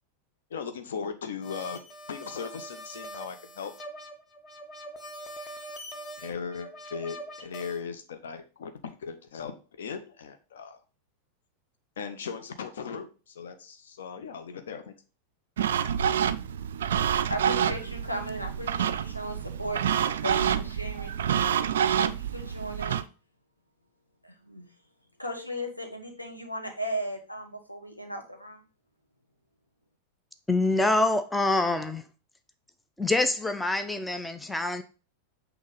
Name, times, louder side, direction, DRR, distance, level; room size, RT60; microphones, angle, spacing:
voice 1, 0.5-1.8 2.1-3.7 6.2-9.5 9.8-10.8 12.0-14.9, left 6 dB, 60° left, 0.7 m, -38 dB
sound 1, 1.4-7.8, equal, 30° left, 1.0 m, -43 dB
sound 2, 15.6-23.0, right 9 dB, 60° right, 0.3 m, -27 dB
voice 2, 16.8-21.2 22.0-23.0 24.2-24.7 25.2-28.6, equal, 85° left, 1.2 m, -37 dB
voice 3, 30.5-32.1 33.0-34.8, left 2 dB, 5° left, 0.5 m, -25 dB
6.3 x 3.0 x 5.3 m
figure-of-eight pair, 90°, 0 cm